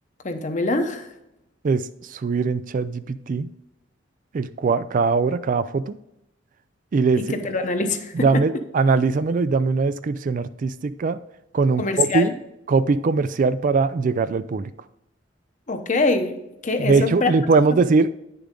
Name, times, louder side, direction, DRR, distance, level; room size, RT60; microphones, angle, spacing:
voice 1, 0.2-1.1 7.3-8.3 11.8-12.3 15.7-16.3 16.6-17.3, left 3 dB, 40° left, 7 dB, 0.9 m, -23 dB
voice 2, 1.6-3.5 4.3-6.0 6.9-7.2 8.1-11.2 11.5-12.3 12.7-14.7 16.8-18.1, right 4 dB, 45° right, 14 dB, 0.3 m, -21 dB
9.6 x 6.8 x 3.7 m, 0.86 s
head